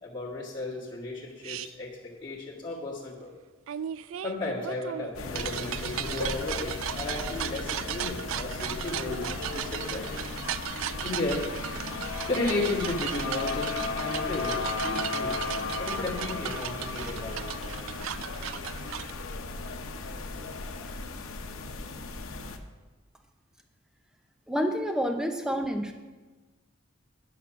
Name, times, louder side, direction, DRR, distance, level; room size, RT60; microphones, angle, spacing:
voice 1, 0.0-3.3 4.2-10.1 11.0-11.5 12.3-15.4 15.8-17.4, left 2 dB, 20° left, -6 dB, 1.7 m, -34 dB
sound 1, 1.4-1.7 3.7-19.1, right 11 dB, 75° right, 0.3 m, -36 dB
sound 2, 5.1-22.6, left 3 dB, 90° left, 0.9 m, -35 dB
voice 2, 24.5-25.9, equal, 5° right, 5 dB, 0.7 m, -28 dB
11.0 x 5.9 x 6.0 m, 1.3 s
head